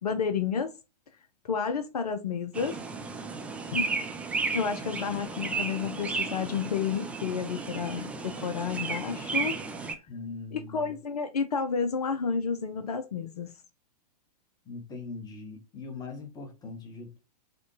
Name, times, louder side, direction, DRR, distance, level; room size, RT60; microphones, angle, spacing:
voice 1, 0.0-0.7 1.4-2.8 3.7-4.0 4.5-9.5 10.5-13.5, left 6 dB, 65° left, 0.5 m, -31 dB
sound 1, 2.5-9.9, right 4 dB, 5° right, 0.4 m, -34 dB
voice 2, 10.1-11.0 14.6-17.2, left 3 dB, 20° left, 1.1 m, -41 dB
5.0 x 2.2 x 2.8 m
figure-of-eight pair, 105°, 21 cm